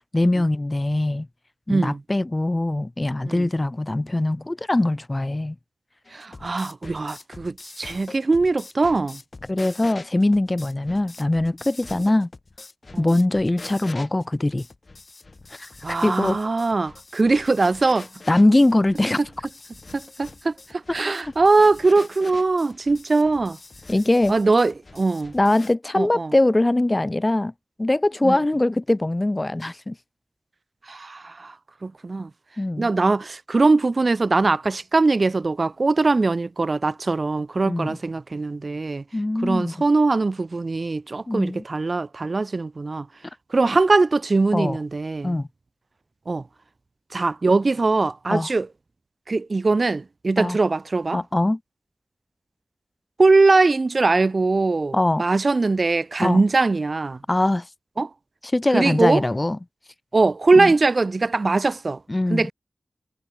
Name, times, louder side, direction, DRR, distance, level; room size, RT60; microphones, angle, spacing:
voice 1, 0.1-1.3 1.7-5.6 9.5-12.3 13.0-14.7 15.6-15.7 16.0-16.4 18.3-19.2 23.9-24.3 25.3-27.5 27.8-30.0 32.6-32.9 37.6-38.0 39.1-39.7 41.3-41.6 44.5-44.8 45.2-45.5 48.3-48.5 50.4-50.6 51.1-51.6 54.9-55.2 56.2-56.4 57.3-57.7 58.4-59.6 60.5-60.7 62.1-62.5, left 2 dB, 30° left, 0.8 m, -22 dB
voice 2, 1.7-2.0 3.3-3.5 6.1-9.2 12.9-13.0 15.8-18.1 19.9-23.6 24.3-25.3 25.9-26.3 28.2-28.4 30.9-31.5 31.8-32.3 32.8-39.0 39.4-43.1 43.5-45.4 46.3-46.4 47.1-48.7 49.3-51.2 53.2-57.2 58.0-58.1 58.7-59.2 60.1-62.0 62.3-62.5, right 3 dB, 60° right, 2.0 m, -21 dB
sound 1, 6.0-25.7, left 3 dB, 55° left, 5.4 m, -44 dB
cardioid pair, 40°, 0 cm